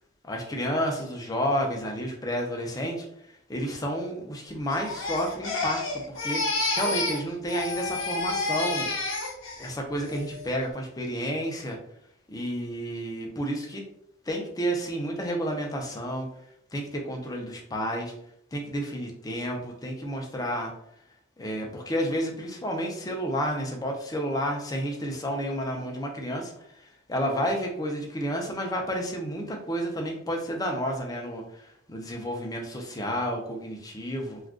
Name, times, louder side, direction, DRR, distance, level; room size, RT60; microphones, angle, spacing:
voice 1, 0.2-3.1 3.5-8.9 9.6-11.8 12.3-13.8 14.3-16.3 16.7-18.1 18.5-20.7 21.4-34.4, equal, 20° left, 1 dB, 0.5 m, -31 dB
Crying sobbing, 4.7-7.2 7.5-9.7 10.1-10.5, left 3 dB, 80° left, 0.7 m, -30 dB
2.4 x 2.4 x 3.5 m, 0.70 s
head